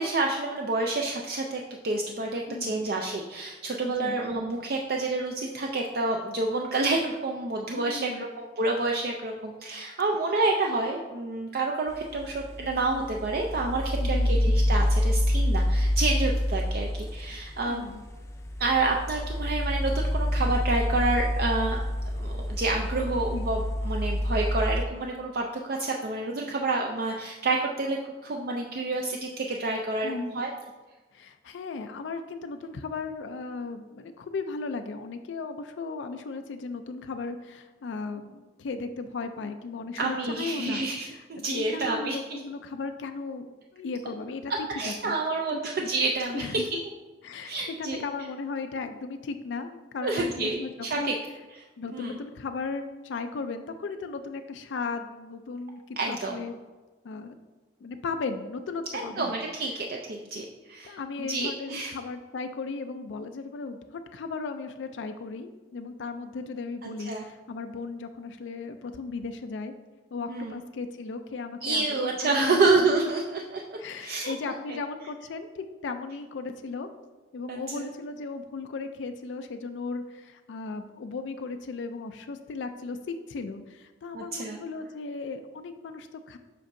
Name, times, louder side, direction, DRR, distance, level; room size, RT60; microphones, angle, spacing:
voice 1, 0.0-17.9 18.6-21.8 22.1-30.5 40.0-42.4 44.7-46.6 47.5-48.0 50.0-51.1 51.9-52.1 56.0-56.4 58.9-61.9 66.8-67.2 70.3-70.5 71.6-73.2 73.5-74.3 77.5-77.9 84.1-84.6, right 3 dB, 55° right, 1 dB, 0.4 m, -29 dB
voice 2, 2.5-2.8 3.8-4.2 7.8-8.2 14.0-14.4 17.7-18.0 23.1-23.5 30.0-30.3 31.1-43.5 43.7-44.5 44.8-45.1 45.5-45.6 46.3-46.8 47.2-47.5 47.8-51.2 51.8-56.6 57.0-57.4 57.8-59.4 60.8-69.7 70.1-72.7 73.8-76.9 77.3-86.4, left 4 dB, 85° left, 7 dB, 0.4 m, -36 dB
sound 1, 11.9-24.8, equal, 15° left, 0.5 m, -27 dB
7.5 x 5.3 x 2.6 m, 1.3 s
head